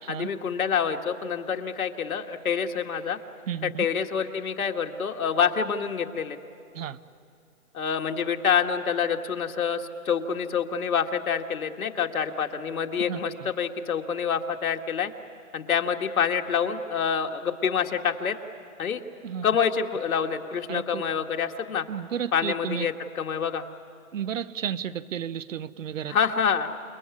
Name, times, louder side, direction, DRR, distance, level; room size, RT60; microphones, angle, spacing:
voice 1, 0.1-3.2 3.6-6.4 7.7-15.1 15.5-18.4 18.8-19.0 19.4-21.9 22.3-23.6 26.1-26.7, left 7 dB, 75° left, 4 dB, 2.0 m, -27 dB
voice 2, 3.5-3.9 6.7-7.0 13.1-13.5 19.2-19.4 20.7-21.0 21.9-22.9 24.1-26.1, right 9 dB, 60° right, 16 dB, 0.9 m, -33 dB
28.0 x 20.5 x 9.7 m, 2.5 s
hypercardioid pair, 155°, 43 cm